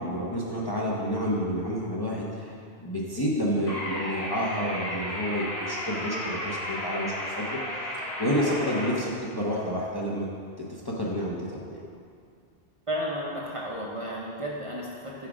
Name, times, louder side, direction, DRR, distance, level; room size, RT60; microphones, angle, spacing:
voice 1, 0.0-7.6 8.2-10.3 10.8-11.8, equal, 25° left, -5 dB, 0.6 m, -29 dB
sound 1, 3.7-8.9, equal, 70° left, 1.5 m, -34 dB
voice 2, 12.9-15.3, equal, 35° right, -4 dB, 0.7 m, -33 dB
5.8 x 4.9 x 4.8 m, 2.3 s
omnidirectional pair, 1.1 m